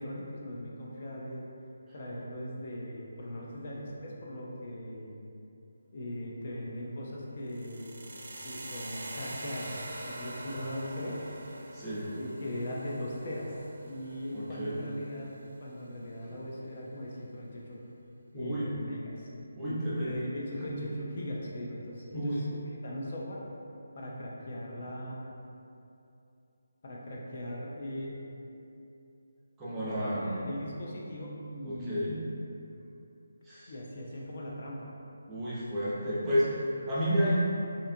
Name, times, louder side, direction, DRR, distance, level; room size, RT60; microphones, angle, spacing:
voice 1, 0.0-1.5 1.9-5.2 5.9-7.9 8.4-11.2 12.1-13.5 13.9-15.3 15.6-17.8 18.3-19.3 19.6-23.4 24.0-25.2 26.8-28.2 29.8-32.1 33.7-34.9, left 1 dB, 50° left, -4 dB, 0.4 m, -39 dB
sound 1, 7.5-15.5, right 1 dB, 70° right, 0.3 m, -44 dB
voice 2, 11.7-12.1 14.3-14.8 18.3-18.7 19.5-20.1 20.5-20.6 22.1-22.4 29.6-30.4 31.6-32.2 33.4-33.7 35.3-37.3, equal, 10° right, -11 dB, 0.6 m, -31 dB
2.6 x 2.3 x 2.6 m, 2.7 s
figure-of-eight pair, 155°, 0 cm